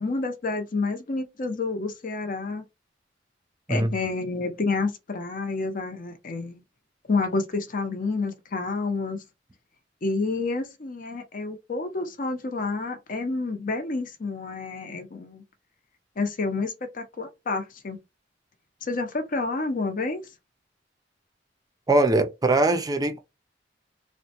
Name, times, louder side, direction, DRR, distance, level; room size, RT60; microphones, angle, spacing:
voice 1, 0.0-2.6 3.7-6.6 7.1-9.2 10.0-15.4 16.2-18.0 18.8-20.2, left 3 dB, 50° left, 0.7 m, -29 dB
voice 2, 21.9-23.2, right 2 dB, 20° right, 0.5 m, -21 dB
3.5 x 2.1 x 2.8 m
head